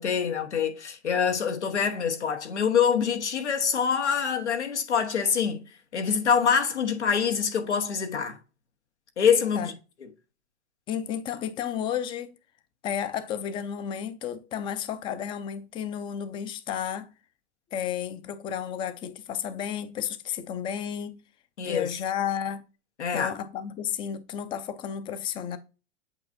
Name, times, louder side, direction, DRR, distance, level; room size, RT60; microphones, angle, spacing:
voice 1, 0.0-5.6 5.9-8.4 9.2-9.7 21.6-22.0 23.0-23.3, left 7 dB, 85° left, 1.1 m, -25 dB
voice 2, 10.9-12.4 12.8-17.1 17.7-21.2 21.6-22.6 23.1-25.6, left 9 dB, 15° left, 0.4 m, -32 dB
8.0 x 4.5 x 2.6 m
hypercardioid pair, 120°, 34 cm